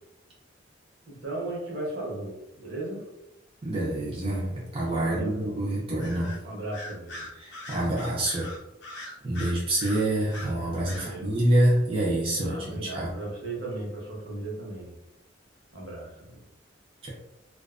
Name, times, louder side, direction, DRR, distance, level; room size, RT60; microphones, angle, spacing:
voice 1, 1.1-3.0 5.0-5.6 6.4-7.3 10.9-11.3 12.4-15.0 15.7-16.4, right 2 dB, 70° right, -3 dB, 0.9 m, -36 dB
voice 2, 3.6-6.4 7.3-8.5 8.9-13.1 17.0-17.1, right 1 dB, 30° right, -6 dB, 0.5 m, -27 dB
Bird vocalization bird call bird song, 6.0-6.4 6.7-10.5 10.9-11.1, left 1 dB, 65° left, 0.5 m, -41 dB
2.4 x 2.2 x 2.4 m, 0.88 s
head